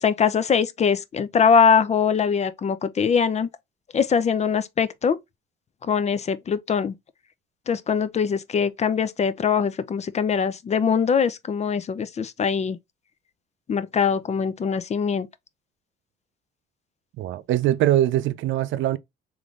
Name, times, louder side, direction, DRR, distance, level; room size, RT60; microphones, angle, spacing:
voice 1, 0.0-3.5 3.9-5.2 5.9-6.9 7.7-12.8 13.7-15.3, left 6 dB, 35° left, 0.4 m, -22 dB
voice 2, 17.2-19.0, right 13 dB, 75° right, 0.4 m, -22 dB
3.5 x 3.1 x 2.4 m
cardioid pair, 90°, 20 cm